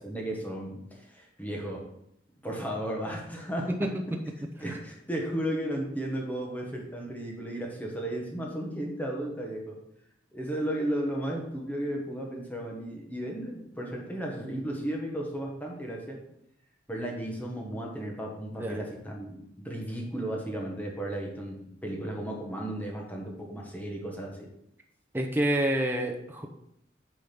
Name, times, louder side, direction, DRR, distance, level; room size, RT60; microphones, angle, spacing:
voice 1, 0.0-1.9 2.4-3.7 4.6-9.8 10.3-16.2 16.9-24.5, right 1 dB, 10° left, -1 dB, 1.4 m, -34 dB
voice 2, 25.1-26.5, right 1 dB, 10° right, 1 dB, 0.8 m, -28 dB
8.5 x 3.8 x 6.0 m, 0.79 s
head